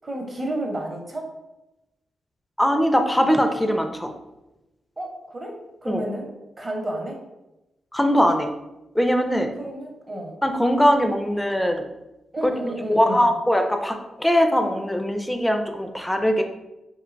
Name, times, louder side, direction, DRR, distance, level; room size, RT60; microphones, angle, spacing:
voice 1, 0.0-1.3 3.2-3.3 5.0-6.3 6.6-7.2 9.6-10.4 12.3-13.3, right 1 dB, 35° right, 1 dB, 0.7 m, -31 dB
voice 2, 2.6-4.1 5.9-6.0 7.9-8.5 8.9-9.5 10.4-11.9 12.9-16.4, equal, 10° left, 5 dB, 0.4 m, -21 dB
2.6 x 2.2 x 2.5 m, 0.95 s
hypercardioid pair, 40°, 0 cm